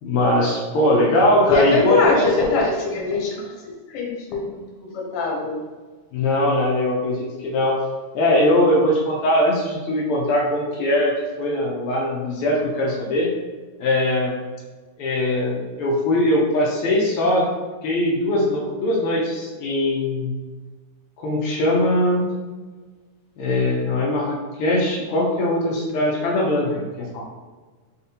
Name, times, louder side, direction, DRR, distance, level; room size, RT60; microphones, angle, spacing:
voice 1, 0.0-2.2 6.1-7.8 8.1-13.3 13.8-14.3 15.0-17.5 17.8-20.4 21.2-22.3 23.4-27.2, left 1 dB, 85° left, -2 dB, 1.2 m, -21 dB
voice 2, 1.4-3.5 3.9-5.6, left 3 dB, 65° left, -2 dB, 1.6 m, -22 dB
4.3 x 4.0 x 2.8 m, 1.4 s
omnidirectional pair, 3.5 m